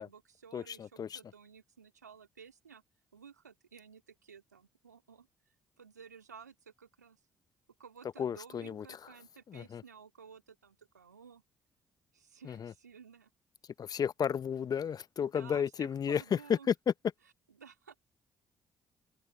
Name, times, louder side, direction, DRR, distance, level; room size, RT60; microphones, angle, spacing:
voice 1, 0.0-2.8 3.1-5.3 5.8-7.2 7.8-11.4 12.1-13.3 15.2-16.7 17.6-18.0, right 6 dB, 90° right, 3.2 m, -54 dB
voice 2, 0.5-1.2 8.2-9.1 9.5-9.8 12.4-12.7 13.8-16.9, left 8 dB, 45° left, 0.9 m, -33 dB
figure-of-eight pair, 45°, 9 cm